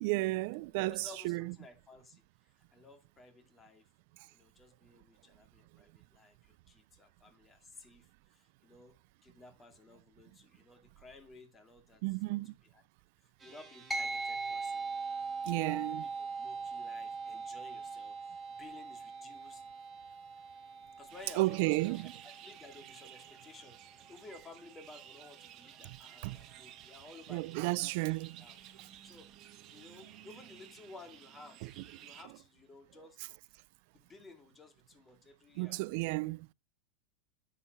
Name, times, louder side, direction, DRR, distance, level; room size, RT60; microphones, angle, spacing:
voice 1, 0.0-1.0 1.2-1.5 12.0-12.5 15.4-16.1 21.4-22.1 25.9-26.0 26.2-26.4 27.3-28.4 35.6-36.5, right 22 dB, 60° right, 0.4 m, -32 dB
voice 2, 0.8-3.9 4.3-12.0 12.3-12.8 13.2-14.8 15.4-16.1 16.4-19.6 21.0-28.6 29.0-29.3 29.7-31.7 32.0-33.2 33.9-36.1, left 3 dB, 20° left, 2.4 m, -56 dB
sound 1, 13.4-24.2, right 5 dB, 15° right, 4.2 m, -60 dB
sound 2, 13.9-23.6, right 4 dB, 5° left, 2.1 m, -41 dB
sound 3, 21.1-32.2, right 11 dB, 40° right, 1.5 m, -55 dB
9.9 x 7.2 x 3.2 m
hypercardioid pair, 115°, 0 cm